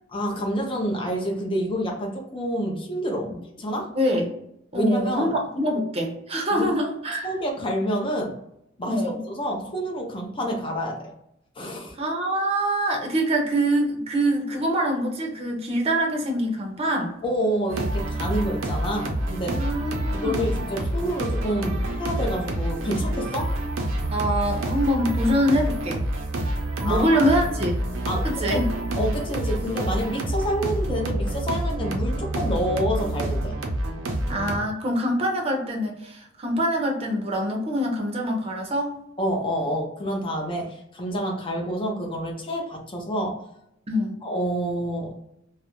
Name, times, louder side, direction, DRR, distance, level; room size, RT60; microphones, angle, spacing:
voice 1, 0.1-3.9 4.7-5.3 6.5-6.7 7.2-8.4 8.8-9.0 9.3-11.0 11.6-11.9 17.2-19.6 20.1-23.5 26.8-27.2 28.1-28.6 28.9-33.5 39.2-43.4 44.2-45.1, equal, 25° left, 0 dB, 0.6 m, -28 dB
voice 2, 3.9-4.3 4.7-7.3 8.8-9.2 12.0-17.2 19.4-20.5 24.1-26.1 26.8-27.8 28.2-28.7 34.3-39.0 43.9-44.2, equal, 30° right, 0 dB, 0.6 m, -24 dB
sound 1, 17.7-34.6, right 1 dB, 85° right, 0.5 m, -28 dB
2.4 x 2.0 x 2.9 m, 0.78 s
head